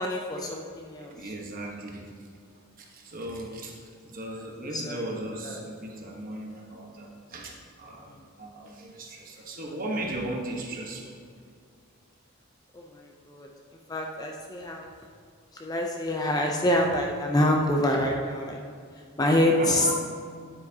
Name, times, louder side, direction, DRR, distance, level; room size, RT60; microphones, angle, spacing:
voice 1, 0.0-1.1 4.6-5.1 5.4-5.6 12.7-13.5 13.9-14.9 15.6-18.6 19.2-19.9, left 1 dB, 15° left, 0 dB, 0.5 m, -26 dB
voice 2, 1.1-2.1 2.8-3.7 4.1-11.1 19.5-19.9, right 1 dB, 40° right, 0 dB, 1.2 m, -37 dB
9.7 x 8.4 x 2.8 m, 2.2 s
head